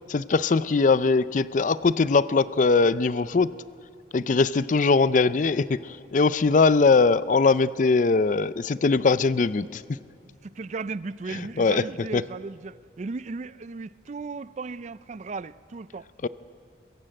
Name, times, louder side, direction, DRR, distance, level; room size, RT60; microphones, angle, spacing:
voice 1, 0.1-3.5 4.1-9.8 11.4-11.8 12.1-12.2 16.2-16.3, left 4 dB, 45° left, 0.4 m, -21 dB
voice 2, 10.2-16.1, right 3 dB, 40° right, 0.4 m, -36 dB
22.5 x 15.5 x 7.7 m
head